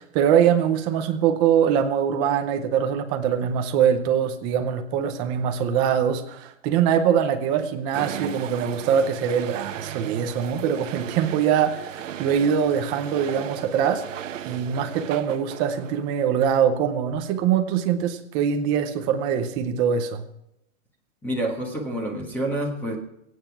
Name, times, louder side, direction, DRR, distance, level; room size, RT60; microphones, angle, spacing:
voice 1, 0.0-20.2, right 8 dB, 10° right, 7 dB, 0.6 m, -23 dB
sound 1, 7.9-16.1, right 10 dB, 85° right, 1.1 m, -36 dB
voice 2, 21.2-23.0, right 1 dB, 5° left, 1 dB, 1.5 m, -28 dB
23.0 x 9.3 x 4.7 m, 0.81 s
hypercardioid pair, 170°, 37 cm